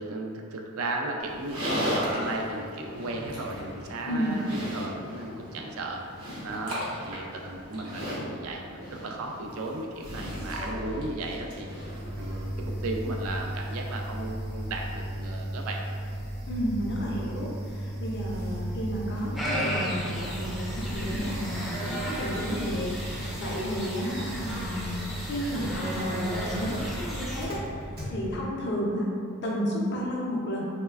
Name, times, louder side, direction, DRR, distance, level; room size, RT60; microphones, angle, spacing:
voice 1, 0.0-6.0 6.4-11.7 12.2-15.8, right 2 dB, 70° right, 1 dB, 0.3 m, -35 dB
Livestock farm animals working animals, 1.2-12.5, equal, 85° right, 0.7 m, -36 dB
voice 2, 4.1-4.4 16.5-27.6 28.1-29.1 29.4-30.6, equal, 50° left, -3 dB, 0.5 m, -32 dB
sound 1, 10.0-28.4, right 1 dB, 45° right, 0.7 m, -36 dB
sound 2, 19.4-27.4, equal, ahead, 0.4 m, -35 dB
3.1 x 2.1 x 2.3 m, 2.2 s
head